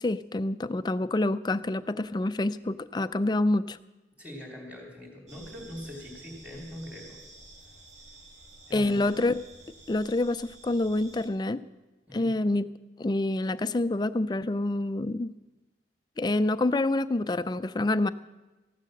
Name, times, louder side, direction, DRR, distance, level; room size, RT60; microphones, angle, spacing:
voice 1, 0.0-3.8 8.7-9.4 9.9-11.6 12.1-12.7 13.0-15.3 16.2-18.1, left 2 dB, 25° left, 13 dB, 0.4 m, -27 dB
voice 2, 4.2-7.2 8.7-9.1 12.1-12.4, left 1 dB, 10° right, -1 dB, 3.3 m, -42 dB
sound 1, 5.3-11.3, right 2 dB, 40° right, 2.3 m, -51 dB
15.0 x 11.5 x 6.4 m, 1.1 s
head